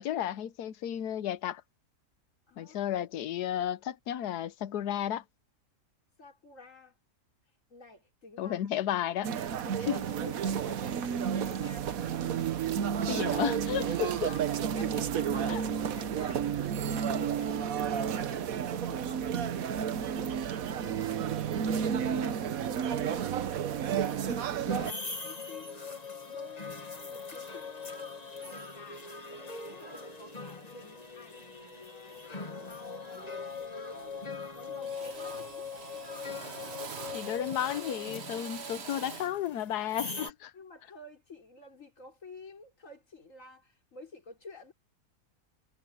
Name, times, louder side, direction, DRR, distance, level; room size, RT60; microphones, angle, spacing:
voice 1, 0.0-1.6 2.6-5.2 8.4-9.3 9.9-10.0 13.1-14.3 15.5-15.6 37.1-40.5, left 11 dB, 85° left, 1.3 m, -33 dB
voice 2, 2.5-2.8 6.2-7.0 7.7-8.7 9.7-11.9 13.1-13.5 13.8-22.9 23.1-25.9 26.2-32.2 32.6-34.2 34.5-35.7 40.5-44.7, left 3 dB, 55° left, 4.6 m, -50 dB
sound 1, 9.2-24.9, right 8 dB, 65° right, 1.3 m, -31 dB
sound 2, 24.0-40.3, left 4 dB, 25° left, 1.7 m, -42 dB
Drill, 32.5-32.7 33.1-33.6 33.9-34.5 34.8-39.4, right 6 dB, 45° right, 1.3 m, -45 dB
omnidirectional pair, 1.7 m